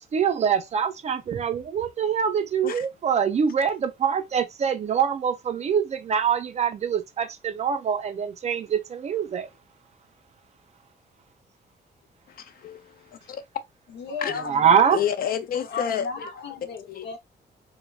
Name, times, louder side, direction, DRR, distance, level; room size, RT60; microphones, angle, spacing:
voice 1, 0.1-9.5 14.4-15.0, right 7 dB, 40° right, 0.4 m, -24 dB
voice 2, 12.3-13.4 14.2-14.4 14.9-16.3 16.9-17.1, left 9 dB, 55° left, 0.5 m, -30 dB
voice 3, 13.9-15.0 15.6-17.2, left 5 dB, 90° left, 0.8 m, -35 dB
3.2 x 2.1 x 2.3 m
wide cardioid pair, 150°, 18 cm